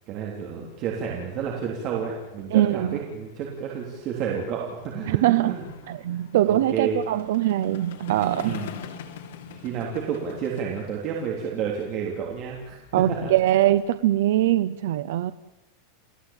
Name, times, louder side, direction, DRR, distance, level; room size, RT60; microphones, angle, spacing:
voice 1, 0.1-5.7 6.1-6.2 6.5-7.0 8.4-8.7 9.5-12.8 13.2-13.3, right 7 dB, 30° right, -2 dB, 3.6 m, -30 dB
sound 1, 0.7-14.5, left 7 dB, 75° left, 3.4 m, -46 dB
voice 2, 2.5-2.9 5.1-5.6 5.9-8.6 12.9-15.3, right 13 dB, 65° right, 12 dB, 0.8 m, -22 dB
29.5 x 16.5 x 9.0 m, 0.99 s
supercardioid pair, 175°, 0 cm